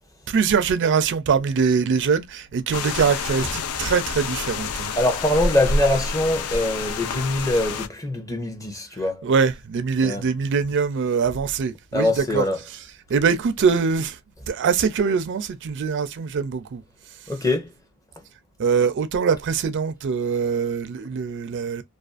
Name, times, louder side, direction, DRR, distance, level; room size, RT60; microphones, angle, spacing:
voice 1, 0.3-5.5 9.2-12.8 13.1-14.2 14.5-16.8 18.6-21.8, right 5 dB, 55° right, 0.4 m, -23 dB
sound 1, 2.7-7.9, left 4 dB, 75° left, 0.4 m, -28 dB
voice 2, 5.0-9.2 10.0-10.2 11.9-12.6 17.3-17.7 18.2-18.3, left 1 dB, 15° left, 0.6 m, -23 dB
2.4 x 2.3 x 2.4 m
head